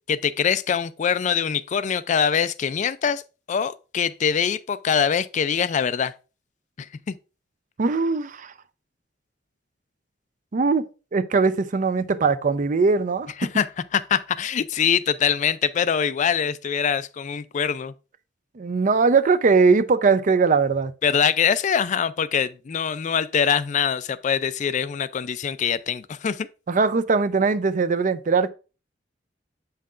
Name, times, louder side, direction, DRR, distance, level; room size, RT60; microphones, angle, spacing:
voice 1, 0.1-3.2 3.5-6.1 6.8-7.1 13.4-13.7 13.9-17.9 21.0-26.5, left 7 dB, 40° left, 0.3 m, -23 dB
voice 2, 7.8-8.5 10.5-10.8 11.1-13.3 18.6-20.9 26.7-28.5, right 4 dB, 45° right, 0.5 m, -20 dB
7.5 x 5.7 x 2.5 m
head